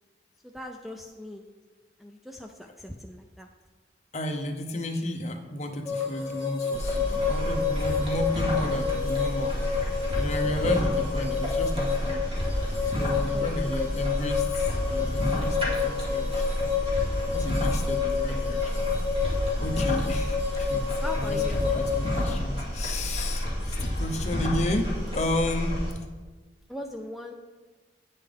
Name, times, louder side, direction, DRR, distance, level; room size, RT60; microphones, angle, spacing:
voice 1, 0.4-1.4 2.0-3.5 12.9-13.6 13.8-13.9 21.0-21.6 26.7-27.3, left 1 dB, ahead, 3 dB, 0.3 m, -40 dB
voice 2, 4.1-12.3 12.8-16.5 17.3-18.9 19.6-25.8, left 1 dB, 40° left, 4 dB, 0.8 m, -32 dB
sound 1, 5.8-22.2, left 6 dB, 15° left, 1.8 m, -30 dB
sound 2, 6.0-14.1 14.8-18.3, right 2 dB, 65° right, 0.6 m, -47 dB
sound 3, 6.7-25.9, equal, 35° right, 2.2 m, -30 dB
9.2 x 5.6 x 3.4 m, 1.3 s
head